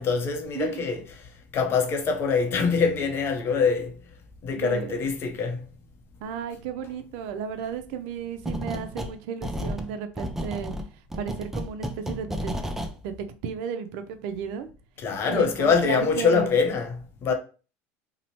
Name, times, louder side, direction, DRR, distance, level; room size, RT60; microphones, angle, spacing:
voice 1, 0.0-3.9 4.4-5.6 15.0-17.3, left 5 dB, 40° left, 0.6 m, -24 dB
voice 2, 0.5-0.9 4.5-5.0 6.2-10.7 11.2-12.6 13.0-13.1 13.4-14.7 15.3-16.5 17.3-17.4, right 7 dB, 75° right, 0.4 m, -33 dB
sound 1, 8.4-9.1 9.4-12.9, equal, 5° right, 0.3 m, -32 dB
2.7 x 2.0 x 2.9 m
supercardioid pair, 130°, 7 cm